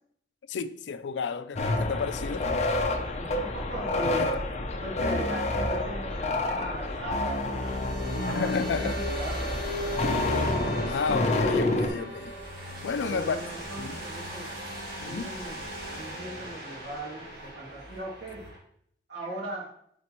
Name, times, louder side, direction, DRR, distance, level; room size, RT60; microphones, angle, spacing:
voice 1, 0.5-2.5 4.0-4.3 8.3-9.0 10.6-12.3 12.8-13.4 13.8-14.0 15.0-15.3, left 5 dB, 80° left, 0.4 m, -32 dB
sound 1, 1.6-11.9, left 2 dB, 40° left, 0.6 m, -28 dB
voice 2, 2.8-4.3 4.8-9.6 13.0-14.6 15.0-15.6 15.9-18.4 19.1-19.7, right 2 dB, 85° right, 2.2 m, -39 dB
sound 2, 6.1-18.6, equal, 60° right, 2.0 m, -38 dB
8.3 x 4.3 x 3.0 m
head